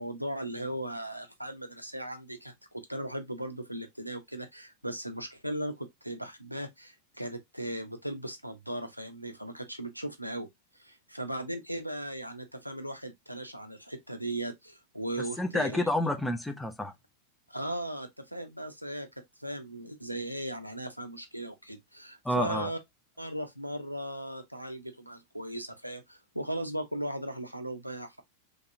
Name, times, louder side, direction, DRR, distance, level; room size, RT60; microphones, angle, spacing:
voice 1, 0.0-10.5 10.8-15.9 17.5-19.1 19.4-22.8 23.2-28.2, right 1 dB, 90° right, 0.5 m, -37 dB
voice 2, 15.4-16.9 22.2-22.7, left 1 dB, 5° left, 0.5 m, -29 dB
3.2 x 2.8 x 2.5 m
figure-of-eight pair, 90°, 0 cm